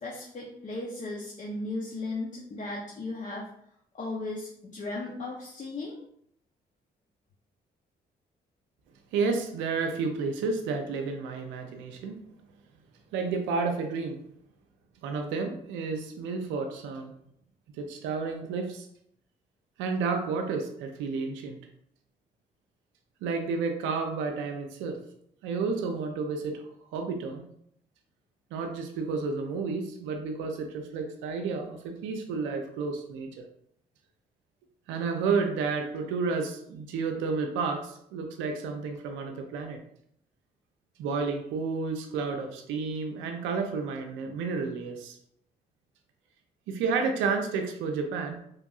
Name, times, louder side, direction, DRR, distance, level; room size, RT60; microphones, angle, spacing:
voice 1, 0.0-3.5 3.9-6.0, left 2 dB, 40° left, -3 dB, 0.6 m, -36 dB
voice 2, 9.1-12.2 13.1-14.2 15.0-17.1 17.8-18.9 19.8-21.6 23.2-25.0 25.4-26.6 26.9-27.5 28.5-33.3 34.9-39.8 41.0-45.2 46.7-48.4, right 4 dB, 85° right, 4 dB, 0.4 m, -31 dB
3.0 x 2.6 x 2.3 m, 0.70 s
supercardioid pair, 55°, 19 cm